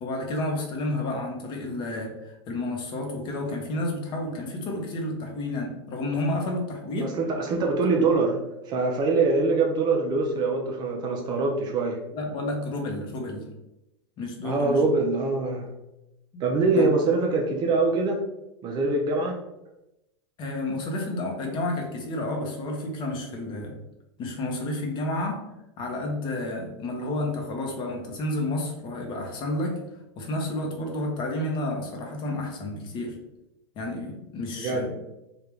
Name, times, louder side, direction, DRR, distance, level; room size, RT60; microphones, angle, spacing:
voice 1, 0.0-7.2 7.9-8.1 12.1-13.4 14.2-14.9 16.3-16.4 16.8-17.0 20.4-23.8 24.2-25.5 25.8-29.8 30.2-33.2 33.8-34.9, left 1 dB, 35° left, 1 dB, 0.8 m, -31 dB
voice 2, 7.0-8.4 8.7-12.0 14.4-15.7 16.4-18.2 18.6-19.4 34.6-34.9, right 3 dB, 30° right, 1 dB, 0.5 m, -24 dB
3.4 x 2.4 x 3.0 m, 0.91 s
supercardioid pair, 130°, 14 cm